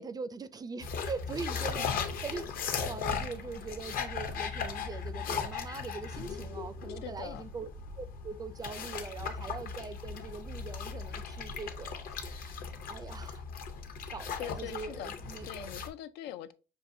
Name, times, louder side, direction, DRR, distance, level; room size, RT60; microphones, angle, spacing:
voice 1, 0.0-2.4 2.8-7.7 8.0-12.6 12.9-13.4 14.1-15.7, right 4 dB, 25° right, 0.3 m, -42 dB
sound 1, 0.8-15.9, left 6 dB, 60° left, 0.7 m, -38 dB
voice 2, 1.8-2.2 7.0-7.4 14.4-15.1 15.4-16.5, left 12 dB, 90° left, 0.4 m, -42 dB
6.2 x 2.4 x 2.6 m
cardioid pair, 110°, 17 cm